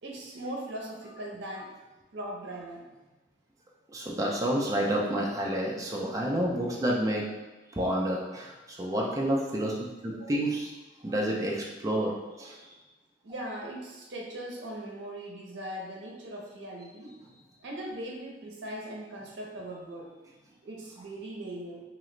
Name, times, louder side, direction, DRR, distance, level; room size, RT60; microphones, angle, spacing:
voice 1, 0.0-1.7 2.1-2.8 6.5-6.8 10.1-10.4 13.2-17.1 17.6-20.1 20.6-21.8, right 1 dB, 65° right, -1 dB, 0.7 m, -40 dB
voice 2, 3.9-7.2 7.8-9.7 10.0-10.7 11.0-12.1 12.4-12.6, right 1 dB, 20° right, -3 dB, 0.4 m, -29 dB
2.9 x 2.4 x 3.1 m, 1.1 s
head